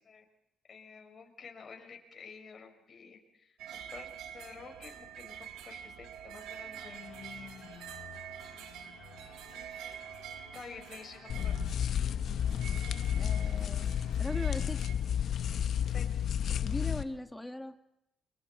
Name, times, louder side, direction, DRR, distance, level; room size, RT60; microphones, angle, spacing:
voice 1, 0.7-7.7 9.5-10.0 10.5-11.6 15.6-16.0 16.4-16.5, left 5 dB, 45° left, 3 dB, 5.1 m, -50 dB
sound 1, 3.6-14.9, right 9 dB, 85° right, 1.6 m, -47 dB
sound 2, 6.5-14.8, left 9 dB, 80° left, 3.0 m, -55 dB
sound 3, 11.3-17.0, left 9 dB, 65° left, 0.8 m, -31 dB
voice 2, 13.1-13.9 14.2-14.8 16.6-17.7, left 1 dB, 10° left, 7 dB, 1.5 m, -39 dB
29.5 x 25.0 x 4.3 m, 0.80 s
cardioid pair, 95°, 0 cm